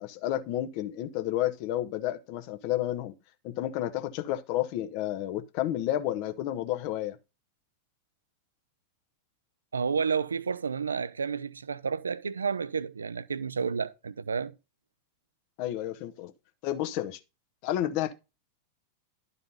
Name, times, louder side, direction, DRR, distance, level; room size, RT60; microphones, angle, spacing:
voice 1, 0.0-3.1 3.4-7.2 15.6-16.3 16.6-17.2 17.6-18.1, left 13 dB, 45° left, 0.9 m, -31 dB
voice 2, 9.7-14.5, right 5 dB, 75° right, 0.5 m, -31 dB
11.5 x 4.1 x 5.3 m
figure-of-eight pair, 90°, 0 cm